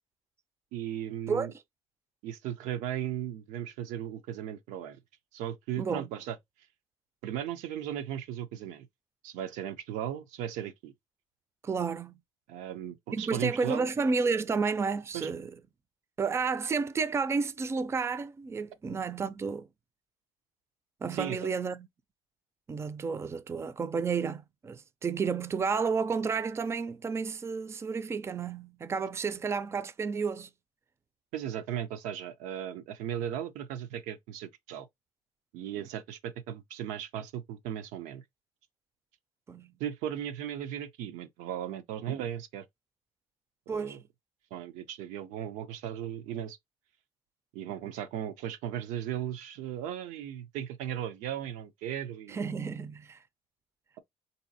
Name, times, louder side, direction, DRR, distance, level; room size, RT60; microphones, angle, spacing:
voice 1, 0.7-1.5 2.2-5.0 5.3-6.4 7.2-8.9 9.2-10.9 12.5-13.9 15.1-15.3 21.1-21.5 31.3-34.9 35.5-38.2 39.8-42.7 43.7-44.0 44.5-46.6 47.5-52.4, right 10 dB, 90° right, 0.5 m, -36 dB
voice 2, 5.8-6.1 11.6-12.2 13.1-15.5 16.2-19.7 21.0-21.9 22.7-30.5 39.5-39.7 43.7-44.0 52.3-53.2, right 5 dB, 20° right, 0.4 m, -31 dB
3.9 x 2.7 x 2.6 m
cardioid pair, 95°, 12 cm